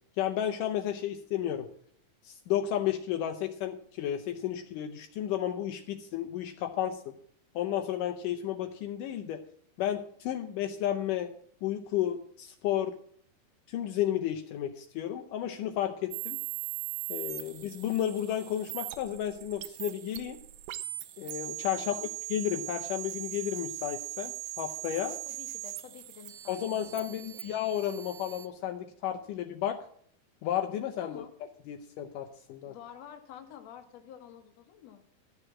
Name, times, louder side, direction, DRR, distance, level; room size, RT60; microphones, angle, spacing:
voice 1, 0.2-1.7 2.2-7.1 7.6-9.4 9.8-11.3 11.6-13.0 13.7-16.4 17.1-20.4 21.2-22.0 22.3-25.2 26.5-29.8 30.4-31.2 31.7-32.8, left 11 dB, 75° left, 5 dB, 2.3 m, -32 dB
sound 1, 16.1-28.5, right 14 dB, 80° right, 2.2 m, -40 dB
voice 2, 21.7-22.1 25.3-27.4 31.0-31.3 32.6-35.0, left 10 dB, 60° left, 6 dB, 2.3 m, -49 dB
13.0 x 6.7 x 7.4 m, 0.62 s
omnidirectional pair, 3.9 m